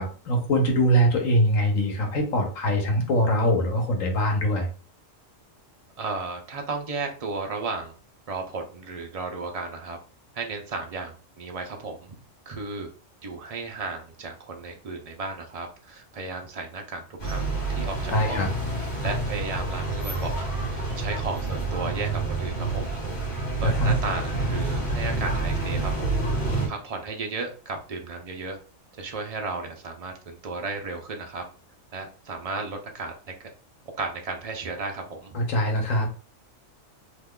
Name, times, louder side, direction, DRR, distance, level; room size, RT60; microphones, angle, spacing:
voice 1, 0.0-4.7 18.1-18.5 23.6-24.0 35.3-36.2, equal, 85° left, 2 dB, 1.3 m, -23 dB
voice 2, 6.0-7.9 8.3-10.0 10.3-12.2 12.5-12.9 13.2-18.5 19.0-20.4 20.7-23.1 23.6-26.2 26.7-28.6 29.0-31.4 31.9-33.1 33.9-35.4, right 3 dB, 60° right, 3 dB, 0.4 m, -34 dB
sound 1, 17.2-26.7, right 2 dB, 55° left, 1.4 m, -28 dB
2.9 x 2.3 x 3.5 m, 0.38 s
omnidirectional pair, 1.4 m